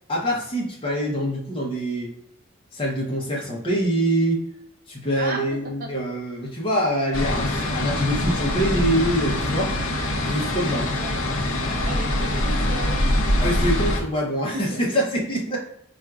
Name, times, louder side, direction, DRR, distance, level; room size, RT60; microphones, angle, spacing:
voice 1, 0.1-2.1 2.7-4.4 4.9-9.7 10.2-10.9 13.4-15.6, equal, 25° left, -3 dB, 0.8 m, -25 dB
sound 1, 7.1-14.0, left 1 dB, 90° left, 0.6 m, -24 dB
voice 2, 10.9-11.2 11.9-13.1 14.7-14.8, right 2 dB, 45° right, 1 dB, 0.6 m, -34 dB
4.3 x 2.4 x 2.3 m, 0.71 s
head